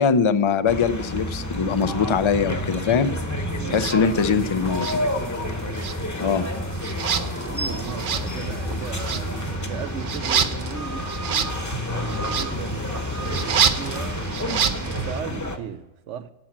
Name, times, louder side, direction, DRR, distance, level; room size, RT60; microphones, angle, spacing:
voice 1, 0.0-3.1 3.7-5.1 6.2-6.5, left 6 dB, 55° left, 0.3 m, -22 dB
sound 1, 0.7-15.6, left 1 dB, 15° left, 0.9 m, -29 dB
voice 2, 3.5-4.4 5.5-6.1 7.4-11.2 11.9-16.3, right 8 dB, 80° right, 1.0 m, -37 dB
sound 2, 3.7-4.0 4.7-5.5 5.7-15.2, right 7 dB, 50° right, 0.7 m, -28 dB
sound 3, 4.1-9.5, left 3 dB, 85° left, 2.2 m, -48 dB
11.0 x 7.3 x 7.3 m
omnidirectional pair, 1.2 m